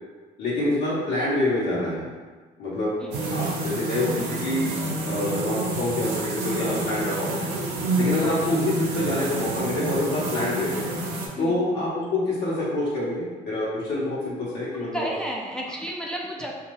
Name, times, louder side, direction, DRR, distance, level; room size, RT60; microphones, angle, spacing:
voice 1, 0.4-2.1 2.6-2.9 3.3-4.6 5.0-7.5 7.9-10.9 11.4-15.1, left 1 dB, 75° left, -8 dB, 0.9 m, -26 dB
sound 1, 3.1-11.3, right 2 dB, 75° right, 0.6 m, -29 dB
voice 2, 14.7-16.5, equal, 5° left, -2 dB, 0.3 m, -32 dB
2.5 x 2.3 x 3.1 m, 1.4 s
cardioid pair, 110°, 17 cm